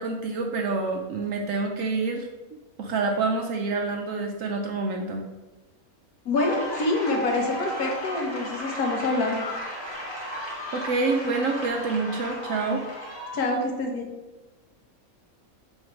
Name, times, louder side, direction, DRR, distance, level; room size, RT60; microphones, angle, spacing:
voice 1, 0.0-2.3 2.8-5.2 10.7-12.8, right 3 dB, 70° right, 2 dB, 0.9 m, -27 dB
voice 2, 6.2-9.4 13.3-14.1, left 2 dB, 85° left, 2 dB, 1.4 m, -26 dB
sound 1, 6.4-13.6, equal, 20° left, 1.4 m, -35 dB
6.7 x 3.2 x 4.5 m, 1.1 s
omnidirectional pair, 1.5 m